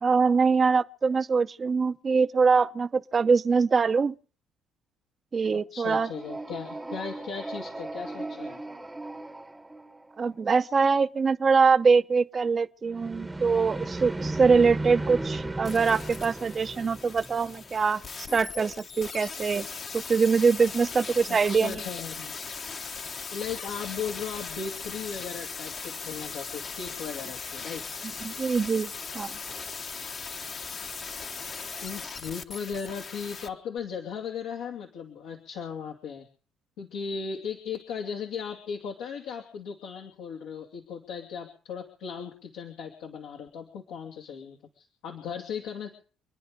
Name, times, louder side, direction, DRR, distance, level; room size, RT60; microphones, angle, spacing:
voice 1, 0.0-4.1 5.3-6.1 10.2-19.7 19.9-21.8 28.2-28.9 29.1-29.3, right 5 dB, 30° right, 0.7 m, -23 dB
voice 2, 5.7-8.6 21.3-22.4 23.3-27.8 31.8-36.3 36.8-45.9, left 6 dB, 85° left, 2.7 m, -37 dB
sound 1, 6.0-10.3 12.9-17.9, right 2 dB, 10° right, 1.0 m, -36 dB
sound 2, 15.6-33.5 33.8-33.9, left 5 dB, 40° left, 1.2 m, -39 dB
27.0 x 10.0 x 5.2 m
cardioid pair, 100°, 0 cm